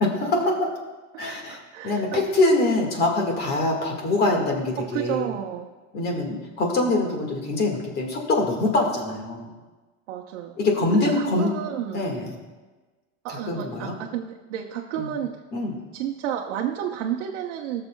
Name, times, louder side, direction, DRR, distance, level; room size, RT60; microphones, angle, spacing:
voice 1, 0.2-0.7 1.2-5.3 5.9-9.5 10.6-11.5 11.9-12.3 13.3-14.0 15.0-15.1 15.5-15.7, left 2 dB, 30° left, 1 dB, 1.7 m, -24 dB
voice 2, 1.1-2.3 4.8-5.7 10.1-10.6 10.9-12.0 13.2-15.4 15.9-17.9, right 10 dB, 90° right, 0 dB, 0.9 m, -31 dB
20.0 x 6.8 x 2.3 m, 1.3 s
supercardioid pair, 160°, 35 cm